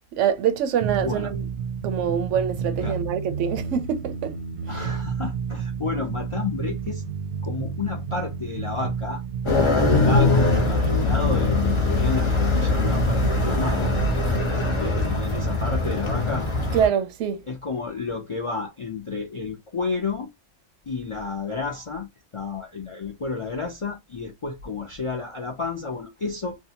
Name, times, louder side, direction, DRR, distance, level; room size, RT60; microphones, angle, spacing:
voice 1, 0.1-1.5 1.8-4.3 4.7-4.9 16.7-17.4, right 8 dB, 85° right, 0.9 m, -25 dB
sound 1, 0.8-16.8, right 6 dB, 60° right, 0.7 m, -31 dB
voice 2, 4.7-7.0 7.4-9.2 9.7-14.0 14.5-16.5 17.5-20.3 20.9-22.1 22.3-26.6, left 4 dB, 55° left, 0.3 m, -31 dB
sound 2, 9.5-16.9, left 3 dB, 30° left, 0.7 m, -22 dB
2.7 x 2.2 x 2.7 m
omnidirectional pair, 1.2 m